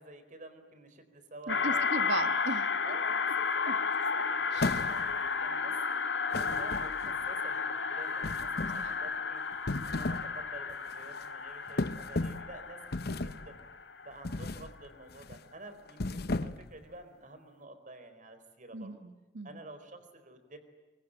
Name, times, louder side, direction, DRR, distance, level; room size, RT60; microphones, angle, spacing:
voice 1, 0.0-2.1 2.8-3.8 4.1-5.8 6.3-9.4 9.9-12.8 13.1-13.6 14.0-18.9 19.4-20.6, right 2 dB, 45° right, 9 dB, 4.3 m, -50 dB
sound 1, 1.5-14.2, left 5 dB, 80° left, 1.8 m, -33 dB
voice 2, 1.5-2.7 3.6-3.7 4.5-4.9 8.7-8.9 18.7-19.6, right 2 dB, 75° right, 10 dB, 1.5 m, -37 dB
sound 2, 4.6-5.3 6.3-7.2 8.2-8.9 9.5-10.3 10.7-10.9 11.8-12.5 12.9-13.5 14.2-14.7 15.1-15.4 15.9-16.8, left 2 dB, 60° left, 0.9 m, -35 dB
24.5 x 23.5 x 9.0 m, 1.2 s
head